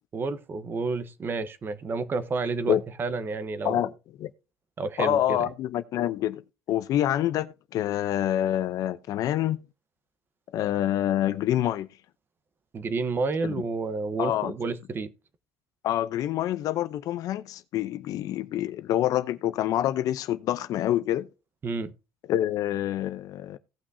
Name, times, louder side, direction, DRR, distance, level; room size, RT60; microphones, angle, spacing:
voice 1, 0.1-3.9 4.8-5.4 12.7-15.1 21.6-21.9, right 4 dB, 30° right, 1.0 m, -30 dB
voice 2, 5.0-6.4 6.7-9.6 10.5-11.9 13.4-13.6 14.2-14.5 15.8-21.3 22.3-23.6, left 12 dB, 60° left, 0.7 m, -26 dB
17.5 x 6.0 x 2.7 m
cardioid pair, 125°, 7 cm